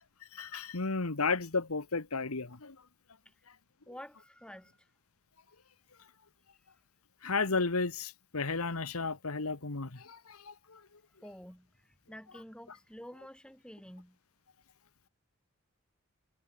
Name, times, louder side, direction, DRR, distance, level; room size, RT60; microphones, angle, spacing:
voice 1, 0.3-2.8 7.2-10.9, left 4 dB, 85° left, 1.6 m, -33 dB
voice 2, 3.9-4.9 11.2-14.2, equal, 5° left, 3.3 m, -50 dB
head